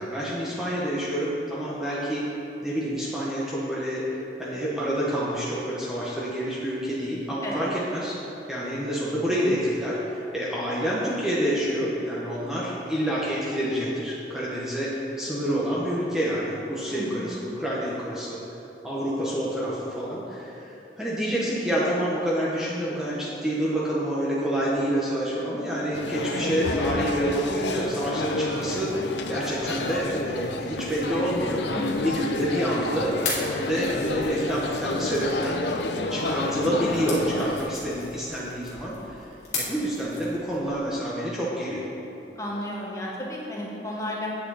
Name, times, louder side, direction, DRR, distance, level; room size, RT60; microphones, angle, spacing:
voice 1, 0.0-2.3 2.6-8.1 8.5-18.4 18.8-28.9 29.3-31.6 32.0-33.2 33.5-35.6 36.1-39.3 39.5-41.9, equal, 5° right, -7 dB, 1.0 m, -28 dB
voice 2, 7.4-7.7 16.9-17.3 31.7-32.1 42.4-44.3, left 1 dB, 15° left, -4 dB, 1.2 m, -33 dB
sound 1, 25.9-37.6, left 2 dB, 75° left, 0.6 m, -30 dB
sound 2, 29.5-40.7, left 3 dB, 40° left, 1.9 m, -39 dB
8.6 x 8.4 x 4.1 m, 3.0 s
head